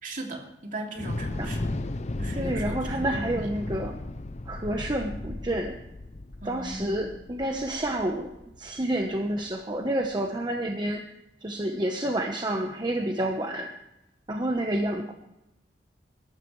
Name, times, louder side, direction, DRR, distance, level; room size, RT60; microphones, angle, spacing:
voice 1, 0.0-1.7 2.2-3.5 6.4-6.9 14.7-14.9, right 1 dB, 45° right, 1 dB, 2.8 m, -37 dB
Thunder / Explosion, 1.0-9.2, left 2 dB, 40° left, 0.6 m, -35 dB
voice 2, 2.3-4.0 4.5-5.7 6.4-8.3 8.6-11.0 11.4-13.7 14.3-15.1, right 1 dB, 25° right, 2 dB, 1.1 m, -29 dB
22.0 x 12.5 x 3.3 m, 0.89 s
head